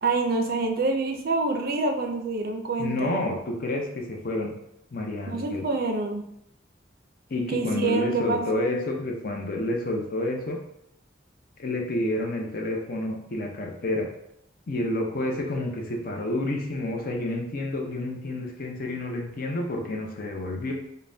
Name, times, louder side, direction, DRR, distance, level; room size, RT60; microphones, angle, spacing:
voice 1, 0.0-3.1 5.3-6.2 7.5-8.7, right 3 dB, 50° right, 4 dB, 0.4 m, -27 dB
voice 2, 2.8-4.5 4.9-5.7 7.3-10.6 11.6-14.1 14.7-20.7, left 1 dB, 50° left, 1 dB, 0.6 m, -29 dB
5.3 x 2.2 x 2.6 m, 0.79 s
head